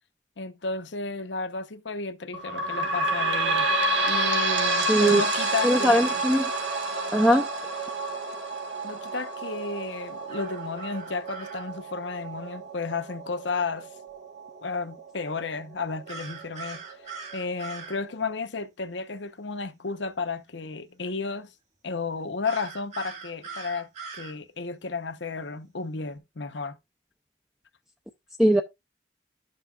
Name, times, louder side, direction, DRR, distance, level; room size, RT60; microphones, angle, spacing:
voice 1, 0.4-3.7 4.1-6.2 8.8-13.9 14.6-16.8 17.3-21.5 21.8-26.8, left 4 dB, 80° left, 1.0 m, -33 dB
sound 1, 2.3-15.5 16.1-16.2 16.4-16.5 17.3-17.4, right 2 dB, 85° right, 1.5 m, -29 dB
voice 2, 4.8-5.2 5.6-6.5 7.1-7.5 28.4-28.6, equal, 5° right, 0.5 m, -20 dB
sound 2, 10.3-11.7 16.1-18.0 22.4-24.3, right 5 dB, 40° right, 1.8 m, -41 dB
12.5 x 5.5 x 2.4 m
head